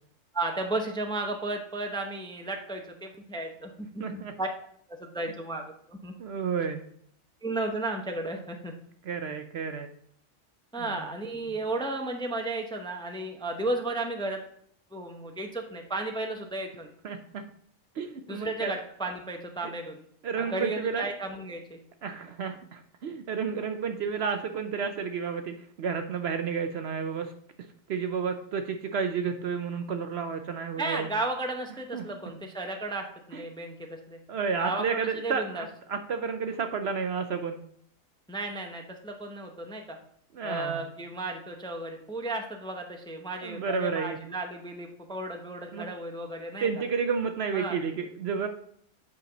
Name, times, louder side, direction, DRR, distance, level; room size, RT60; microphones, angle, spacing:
voice 1, 0.3-4.5 5.0-6.1 7.4-8.7 10.7-14.4 14.9-16.9 18.3-20.0 20.4-21.8 30.8-34.2 34.6-35.6 38.3-40.0 40.4-46.7 47.5-47.8, right 2 dB, 5° left, 3 dB, 0.6 m, -34 dB
voice 2, 4.0-4.3 6.2-6.8 9.0-9.9 10.8-11.1 17.0-17.4 17.9-18.7 19.6-19.7 20.2-21.0 22.0-27.3 27.9-31.1 31.9-32.0 33.3-33.4 34.3-37.6 40.3-40.9 43.4-44.2 45.7-45.9 46.6-48.5, right 6 dB, 60° right, 7 dB, 0.8 m, -31 dB
8.3 x 5.2 x 3.9 m, 0.67 s
omnidirectional pair, 1.4 m